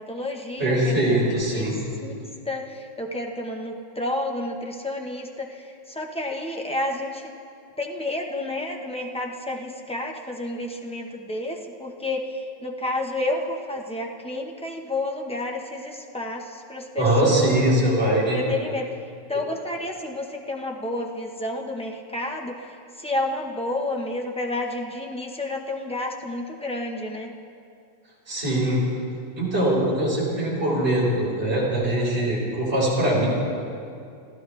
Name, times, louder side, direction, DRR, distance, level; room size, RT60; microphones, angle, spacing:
voice 1, 0.0-1.7 2.0-2.1 2.4-7.3 7.8-17.5 18.3-18.9 19.3-22.7 23.0-27.3, left 1 dB, 5° left, 1 dB, 0.4 m, -30 dB
voice 2, 0.6-1.7 16.9-18.4 19.3-19.4 28.3-28.8 29.3-33.3, right 1 dB, 30° right, -6 dB, 4.7 m, -22 dB
27.5 x 15.0 x 3.4 m, 2.4 s
omnidirectional pair, 2.3 m